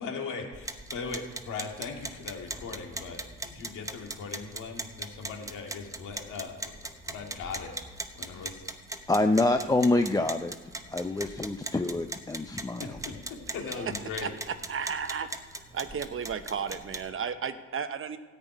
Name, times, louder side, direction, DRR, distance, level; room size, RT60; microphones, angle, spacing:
voice 1, 0.0-6.6 7.1-7.7 8.1-8.6 12.8-13.1 13.5-14.3, left 5 dB, 80° left, 1 dB, 2.4 m, -39 dB
sound 1, 0.5-17.1, right 2 dB, 10° right, 1.0 m, -41 dB
voice 2, 9.1-10.5 10.9-12.8, left 2 dB, 10° left, 6 dB, 0.5 m, -26 dB
voice 3, 14.2-15.3 15.7-18.2, right 6 dB, 45° right, 10 dB, 1.0 m, -33 dB
13.5 x 6.0 x 9.2 m, 1.4 s
cardioid pair, 90°, 30 cm